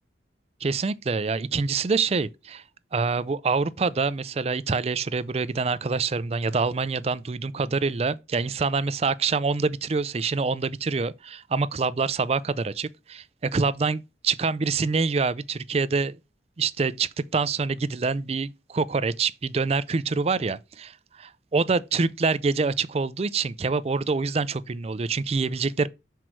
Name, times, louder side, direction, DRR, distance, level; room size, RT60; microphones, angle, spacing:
voice 1, 0.6-2.6 2.9-16.2 16.6-21.0 21.5-25.9, right 4 dB, 35° right, 0.4 m, -26 dB
6.1 x 4.5 x 6.1 m
head